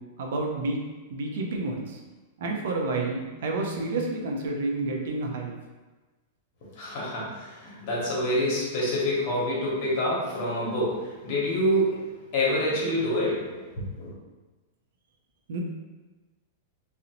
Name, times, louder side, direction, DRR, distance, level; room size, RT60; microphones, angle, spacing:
voice 1, 0.2-0.8 1.1-2.0 2.4-5.5 15.5-15.6, right 2 dB, 65° right, 1 dB, 0.4 m, -29 dB
voice 2, 6.7-14.1, equal, 45° left, -5 dB, 0.9 m, -27 dB
2.5 x 2.0 x 2.8 m, 1.2 s
supercardioid pair, 165°, 0 cm